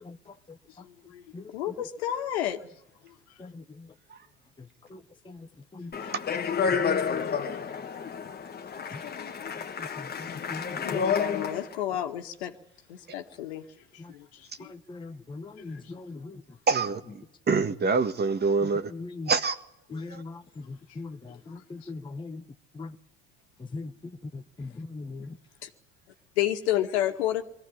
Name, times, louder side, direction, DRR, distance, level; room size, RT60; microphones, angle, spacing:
voice 1, 0.8-1.2 1.5-2.6 6.0-6.1 10.8-12.6 12.9-13.7 13.9-14.7 15.7-15.8 21.5-21.6 25.6-25.7 26.4-27.4, left 12 dB, 90° left, 1.9 m, -31 dB
Speech, 5.9-11.7, left 6 dB, 30° left, 1.6 m, -30 dB
voice 2, 10.5-10.8 14.9-16.4 18.9-19.3 19.9-20.4 20.7-21.2 21.7-22.4 22.8-22.9 23.7-23.9 24.3-25.3, left 3 dB, 15° left, 1.0 m, -39 dB
voice 3, 16.7-18.9 19.3-19.6 20.1-20.2, right 4 dB, 30° right, 1.7 m, -26 dB
21.5 x 15.5 x 9.9 m
supercardioid pair, 85°, 32 cm